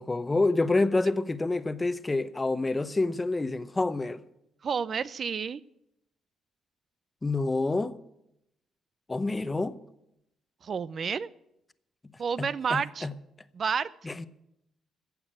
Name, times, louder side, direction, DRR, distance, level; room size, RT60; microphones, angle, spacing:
voice 1, 0.0-4.2 7.2-8.0 9.1-9.8 12.4-13.1 14.0-14.3, left 2 dB, 20° left, 0.7 m, -28 dB
voice 2, 4.6-5.6 10.6-11.3 12.2-13.1 13.5-13.9, right 6 dB, 50° right, 0.5 m, -30 dB
15.0 x 7.2 x 8.8 m
cardioid pair, 90°, 0 cm